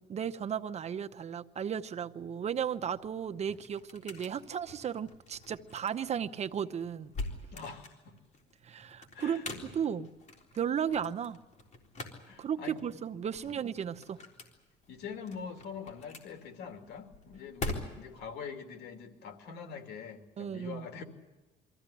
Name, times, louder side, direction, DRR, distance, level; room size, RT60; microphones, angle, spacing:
voice 1, 0.0-7.1 8.6-9.4 9.7-10.1 10.6-11.4 12.4-14.2 20.4-20.9, right 8 dB, 40° right, 9 dB, 0.8 m, -35 dB
sound 1, 2.8-18.3, left 2 dB, 45° left, 3.8 m, -45 dB
voice 2, 7.5-8.2 9.1-9.5 12.2-12.8 13.4-13.6 14.9-21.0, left 6 dB, 75° left, 5 dB, 2.9 m, -44 dB
24.0 x 15.0 x 10.0 m, 1.2 s
cardioid pair, 110°, 17 cm